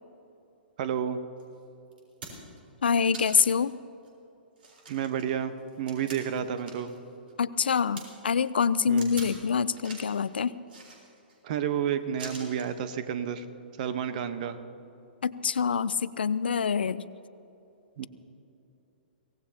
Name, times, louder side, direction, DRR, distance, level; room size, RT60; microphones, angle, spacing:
voice 1, 0.8-1.2 4.9-6.9 8.9-9.3 11.4-13.4 13.8-14.6 18.0-18.1, right 8 dB, 50° right, 11 dB, 1.1 m, -31 dB
sound 1, 1.4-1.5 1.9-2.6 3.1-3.6 4.0-4.1 4.6-7.0 7.3-8.0 9.0-9.4 9.7-10.2 10.7-11.4 12.2-12.7 13.8-14.0, right 3 dB, 65° right, 4.4 m, -44 dB
voice 2, 2.8-3.7 7.4-10.5 15.2-17.0, left 6 dB, 75° left, 16 dB, 0.5 m, -26 dB
23.5 x 17.5 x 2.9 m, 2.9 s
hypercardioid pair, 120°, 6 cm